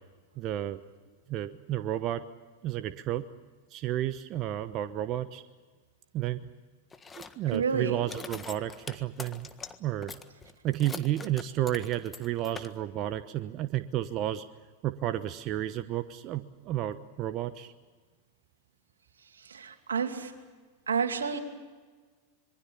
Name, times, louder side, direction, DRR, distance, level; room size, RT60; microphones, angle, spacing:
voice 1, 0.4-0.8 1.3-2.2 2.6-3.2 3.7-5.4 6.1-6.4 7.2-9.5 9.8-10.1 10.6-14.4 14.8-17.7, right 13 dB, 45° right, 10 dB, 1.0 m, -32 dB
sound 1, 6.9-7.7 8.0-9.8 10.0-12.7, left 5 dB, 20° left, 1.6 m, -43 dB
voice 2, 7.5-8.0 19.4-20.3 20.9-21.4, right 6 dB, 90° right, 6 dB, 2.5 m, -30 dB
26.0 x 23.0 x 7.0 m, 1.4 s
hypercardioid pair, 100°, 0 cm